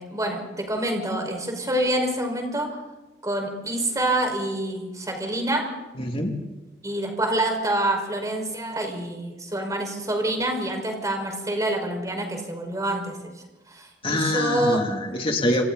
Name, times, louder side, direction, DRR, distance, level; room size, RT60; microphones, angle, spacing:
voice 1, 0.0-2.7 3.2-5.7 6.8-13.2 13.7-14.8 15.1-15.2, right 1 dB, 20° right, 2 dB, 5.4 m, -27 dB
voice 2, 6.0-6.4 14.0-15.6, left 1 dB, 35° left, 2 dB, 3.0 m, -24 dB
28.5 x 27.5 x 4.2 m, 1.1 s
head